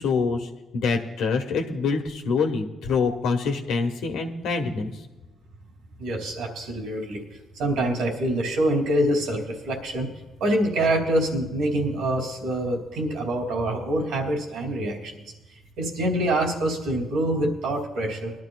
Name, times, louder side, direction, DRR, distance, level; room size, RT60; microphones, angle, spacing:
voice 1, 0.0-4.9, left 4 dB, 85° left, 4 dB, 1.4 m, -25 dB
voice 2, 6.0-7.2 7.5-10.1 10.4-15.1 15.5-18.3, right 1 dB, 85° right, 2 dB, 2.8 m, -25 dB
21.0 x 12.0 x 2.4 m, 1.1 s
cardioid pair, 90°, 0 cm